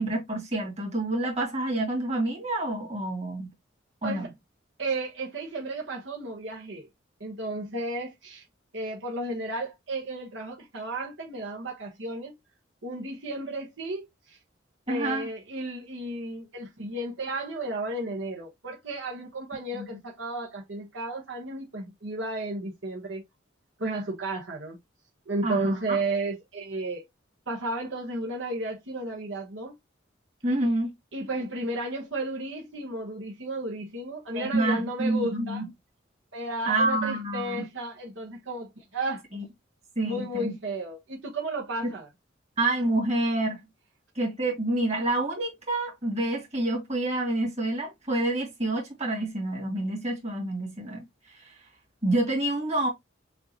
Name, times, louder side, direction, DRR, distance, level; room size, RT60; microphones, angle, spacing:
voice 1, 0.0-3.5 4.0-4.3 14.9-15.3 19.7-19.9 25.4-26.0 30.4-30.9 34.4-35.6 36.7-37.7 39.3-39.4 40.0-40.5 41.8-41.9 42.6-43.6 44.2-51.0 51.4-51.5 52.0-52.9, right 2 dB, 35° right, 2.3 m, -28 dB
voice 2, 4.8-6.9 7.2-8.4 8.7-12.4 12.8-14.4 14.9-23.2 23.8-24.8 25.3-27.1 27.5-29.7 31.1-35.6 36.3-39.2 40.0-42.1, right 2 dB, 70° right, 1.2 m, -33 dB
6.6 x 2.7 x 2.9 m
head